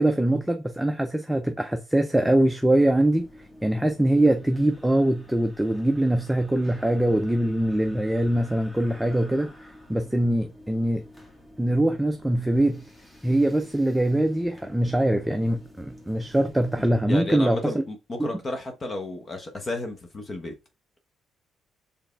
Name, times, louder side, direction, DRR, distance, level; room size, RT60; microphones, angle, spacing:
voice 1, 0.0-3.3 3.6-11.0 11.6-12.9 13.2-17.7 18.2-18.3, right 1 dB, 5° right, 0.5 m, -23 dB
sound 1, 2.9-16.9, left 1 dB, 10° left, 1.5 m, -50 dB
voice 2, 17.1-20.5, left 2 dB, 35° left, 1.0 m, -32 dB
4.7 x 3.4 x 3.3 m
cardioid pair, 90°, 0 cm